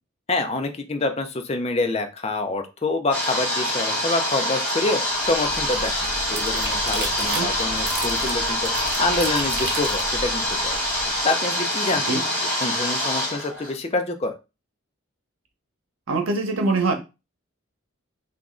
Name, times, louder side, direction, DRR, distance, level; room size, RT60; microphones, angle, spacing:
voice 1, 0.3-8.7 9.0-10.8 11.2-14.3, left 2 dB, 30° left, 0.5 m, -27 dB
sound 1, 3.1-13.7, left 1 dB, 10° left, 1.5 m, -25 dB
sound 2, 5.1-11.2, right 2 dB, 50° right, 0.9 m, -35 dB
voice 2, 16.1-16.9, right 3 dB, 85° right, 0.8 m, -23 dB
3.0 x 2.4 x 3.7 m
head